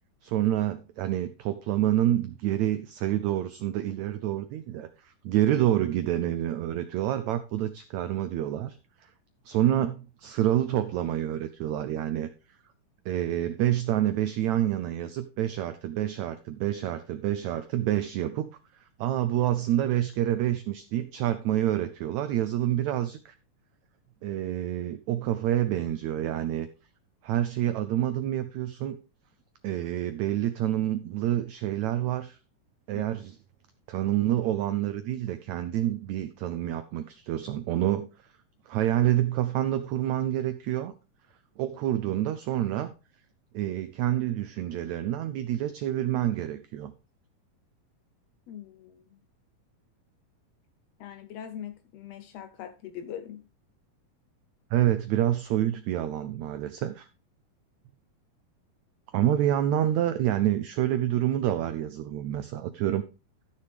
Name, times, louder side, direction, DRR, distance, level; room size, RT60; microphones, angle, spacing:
voice 1, 0.2-8.8 9.4-12.3 13.0-18.5 19.0-23.3 24.2-26.7 27.2-29.0 29.6-32.4 32.9-33.4 33.9-38.1 38.7-40.9 41.6-42.9 43.5-46.9 54.7-57.1 59.1-63.0, right 12 dB, 80° right, 1.6 m, -27 dB
voice 2, 48.5-49.0 51.0-53.4, left 9 dB, 90° left, 1.4 m, -41 dB
13.5 x 6.6 x 3.5 m
omnidirectional pair, 3.9 m